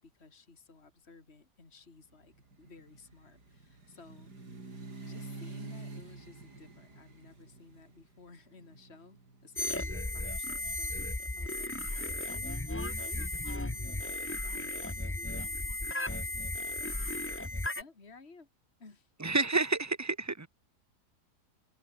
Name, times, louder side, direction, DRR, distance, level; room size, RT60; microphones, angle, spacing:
voice 1, 0.0-4.3 5.0-11.0 11.3-12.6 12.9-17.0 17.7-18.5 18.8-19.1, left 3 dB, 40° left, 3.2 m, -56 dB
sound 1, 2.1-10.1, right 3 dB, 80° right, 5.2 m, -48 dB
sound 2, 9.6-17.8, left 1 dB, 10° left, 0.9 m, -35 dB
voice 2, 19.2-20.5, right 3 dB, 10° right, 1.0 m, -29 dB
open air
omnidirectional pair, 1.7 m